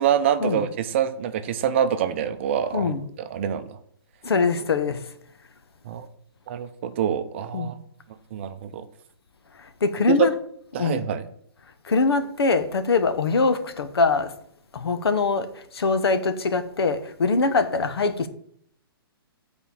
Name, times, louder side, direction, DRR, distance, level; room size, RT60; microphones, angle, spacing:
voice 1, 0.0-2.9 3.3-3.7 5.9-6.1 6.5-7.7 8.3-8.8 10.1-10.2 10.7-11.3, right 9 dB, 30° right, 0.5 m, -25 dB
voice 2, 2.7-3.0 4.2-5.0 7.5-7.7 9.8-10.3 10.8-11.0 11.9-14.3 14.7-18.3, left 4 dB, 85° left, 1.0 m, -23 dB
7.3 x 4.4 x 6.9 m
hypercardioid pair, 165°, 13 cm